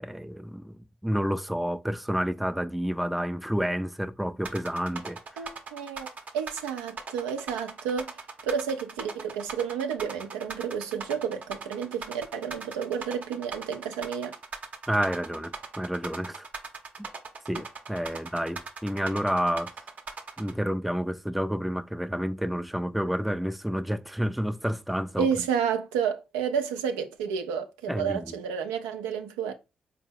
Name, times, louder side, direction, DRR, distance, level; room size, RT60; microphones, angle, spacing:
voice 1, 0.0-5.5 14.9-16.5 17.0-17.1 17.5-19.7 20.4-25.3 27.9-28.2, equal, ahead, 0.3 m, -30 dB
sound 1, 4.4-20.5, right 4 dB, 50° right, 0.7 m, -39 dB
voice 2, 5.4-14.3 25.2-29.5, right 7 dB, 85° right, 0.4 m, -31 dB
4.2 x 2.0 x 3.6 m
hypercardioid pair, 45°, 3 cm